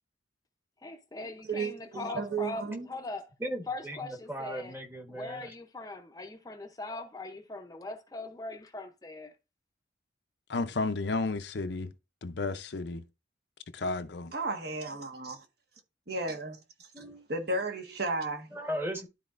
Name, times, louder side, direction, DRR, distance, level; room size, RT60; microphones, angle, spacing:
voice 1, 0.8-3.3 3.7-4.8 5.1-9.3, left 2 dB, 20° left, 0.7 m, -40 dB
voice 2, 1.4-2.9 14.3-15.4 16.1-16.9 17.3-18.5, right 3 dB, 55° right, 1.4 m, -34 dB
voice 3, 3.4-5.5 16.9-17.2 18.5-19.1, right 1 dB, 10° right, 1.2 m, -37 dB
voice 4, 10.5-11.9 12.2-13.0 13.7-14.3, left 3 dB, 65° left, 0.6 m, -32 dB
12.5 x 4.2 x 2.5 m
head